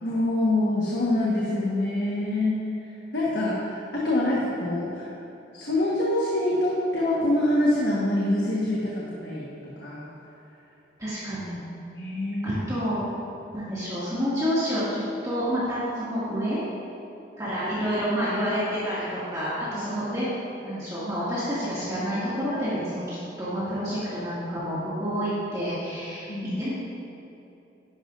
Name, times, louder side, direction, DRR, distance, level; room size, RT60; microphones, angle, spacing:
voice 1, 0.0-5.1 5.5-10.1 11.9-12.6 26.3-26.5, left 1 dB, 70° left, -6 dB, 1.3 m, -25 dB
voice 2, 11.0-11.6 12.4-13.0 13.5-16.6 17.4-19.0 19.3-20.3 20.6-26.3 26.6-26.7, equal, 20° right, -12 dB, 2.1 m, -28 dB
11.0 x 10.5 x 2.5 m, 2.9 s
head